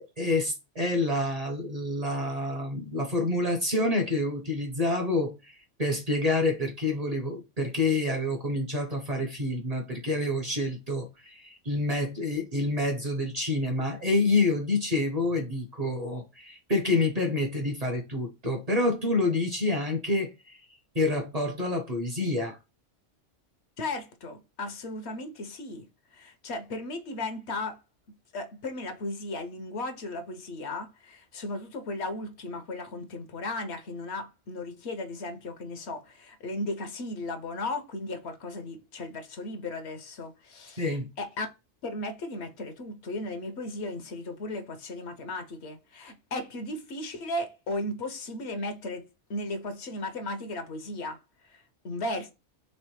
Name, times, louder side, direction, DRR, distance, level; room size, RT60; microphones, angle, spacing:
voice 1, 0.0-5.3 5.8-20.3 20.9-22.6 40.8-41.1, left 2 dB, 40° right, 0.7 m, -28 dB
voice 2, 23.8-27.8 28.3-41.5 41.8-51.2 51.4-52.3, left 2 dB, 65° left, 0.9 m, -36 dB
3.3 x 3.2 x 4.5 m
omnidirectional pair, 1.3 m